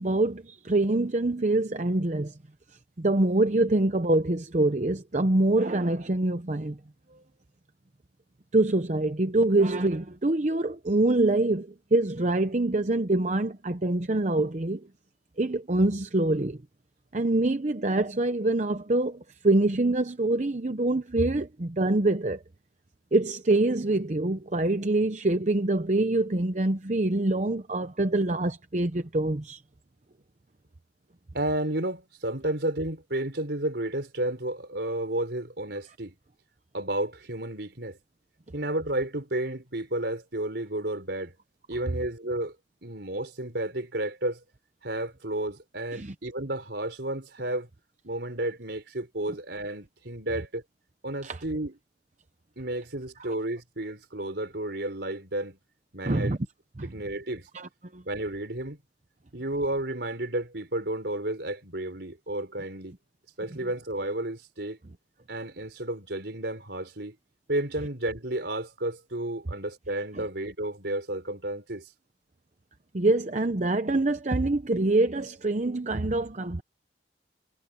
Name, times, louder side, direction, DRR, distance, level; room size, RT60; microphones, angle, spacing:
voice 1, 0.0-2.4 3.0-6.8 8.5-14.9 15.4-16.6 17.1-22.4 23.1-29.6 45.9-46.1 51.2-51.4 56.1-56.4 56.8-56.9 57.5-58.0 70.1-70.2 72.9-76.6, right 2 dB, 40° right, 0.8 m, -25 dB
voice 2, 31.3-36.1 36.7-38.0 38.5-41.3 41.7-42.6 42.8-44.4 44.8-47.7 48.0-50.6 51.0-51.8 52.6-55.6 55.9-56.4 56.8-57.5 58.1-58.8 59.3-63.0 63.4-64.8 65.3-67.2 67.5-71.9, right 1 dB, 65° right, 4.3 m, -32 dB
head